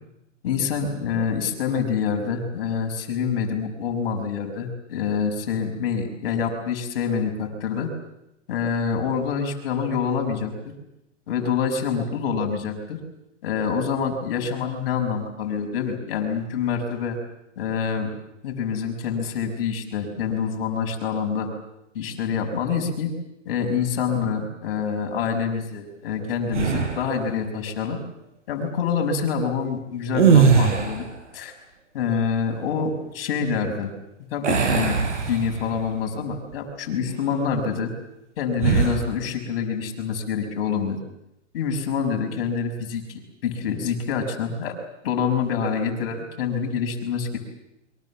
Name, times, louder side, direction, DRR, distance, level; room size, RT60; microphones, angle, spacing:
voice 1, 0.4-7.9 8.5-10.5 11.3-13.0 13.4-17.2 17.6-18.1 18.4-21.5 21.9-23.1 23.5-28.0 28.5-31.1 31.3-31.5 31.9-33.9 34.3-37.9 38.4-41.0 41.5-44.7 45.0-47.4, left 6 dB, 50° left, 3 dB, 5.9 m, -26 dB
sound 1, 26.5-27.2 30.1-31.2 34.4-35.9 36.3-36.5 38.6-39.1, right 6 dB, 70° right, 6.4 m, -20 dB
28.0 x 23.5 x 7.3 m, 0.85 s
hypercardioid pair, 150°, 37 cm